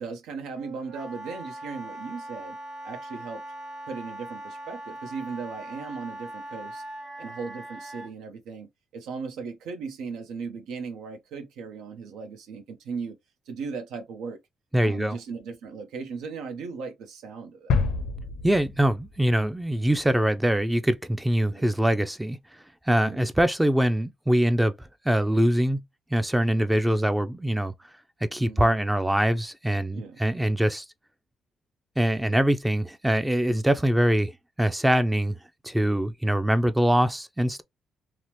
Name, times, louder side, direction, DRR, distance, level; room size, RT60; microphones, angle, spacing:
voice 1, 0.0-2.6 2.8-3.4 3.9-6.8 7.2-13.2 13.5-14.4 14.8-17.8 19.8-19.9 21.4-21.6 22.9-23.2 28.4-28.8 29.9-30.2 33.5-33.6, right 5 dB, 90° right, 0.6 m, -37 dB
Wind instrument woodwind instrument, 0.5-8.1, right 1 dB, 60° right, 1.2 m, -40 dB
voice 2, 14.7-15.2 18.4-22.4 22.9-25.8 26.1-27.7 28.2-30.9 32.0-34.3 34.6-35.4 35.6-37.6, right 1 dB, 5° right, 0.3 m, -23 dB
sound 1, 17.7-19.6 20.0-20.1, left 4 dB, 80° left, 0.5 m, -29 dB
2.8 x 2.0 x 3.1 m
cardioid pair, 90°, 0 cm